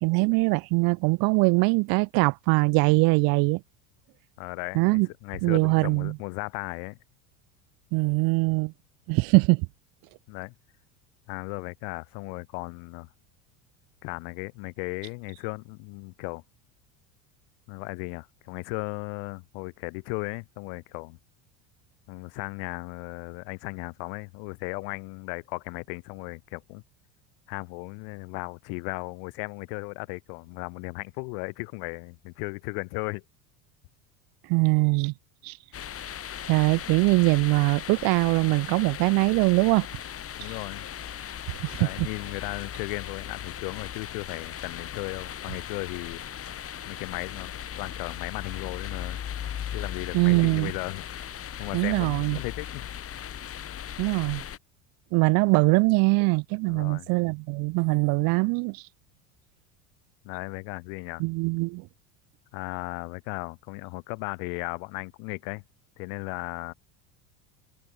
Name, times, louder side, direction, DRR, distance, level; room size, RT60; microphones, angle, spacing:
voice 1, 0.0-3.6 4.7-5.1 5.4-6.1 7.9-8.7 9.1-9.7 34.5-35.1 35.4-35.6 36.5-39.9 41.6-42.1 50.1-50.7 51.7-52.4 54.0-54.4 55.1-58.8 61.2-61.9, right 28 dB, 60° right, 0.7 m, -22 dB
voice 2, 4.4-7.0 10.3-10.5 11.3-13.1 14.0-16.4 17.7-21.2 22.1-26.8 27.5-33.2 40.4-40.9 41.7-46.2 46.9-49.2 49.7-51.0 51.6-52.9 56.7-57.1 60.2-61.2 62.5-65.6 66.0-66.7, left 40 dB or more, 70° left, 7.2 m, -36 dB
sound 1, 35.7-54.6, left 9 dB, 35° left, 2.4 m, -38 dB
supercardioid pair, 105°, 41 cm